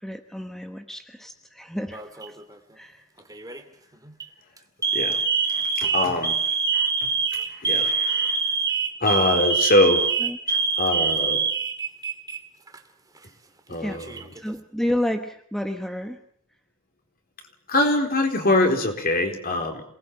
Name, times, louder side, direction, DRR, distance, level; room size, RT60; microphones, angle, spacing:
voice 1, 0.0-2.4 2.8-3.1 10.2-10.4 13.8-14.0 14.3-16.2, left 1 dB, ahead, 6 dB, 1.2 m, -30 dB
Alarm, 1.9-2.4 3.3-3.6 4.1-4.2 4.8-12.4 12.7-12.8 13.7-14.4, right 5 dB, 15° right, 2.2 m, -25 dB
voice 2, 5.5-6.4 6.7-8.4 9.0-10.1 10.5-11.4 13.7-14.1 17.7-19.8, left 2 dB, 45° left, 4 dB, 4.3 m, -24 dB
27.5 x 20.0 x 7.4 m, 0.63 s
head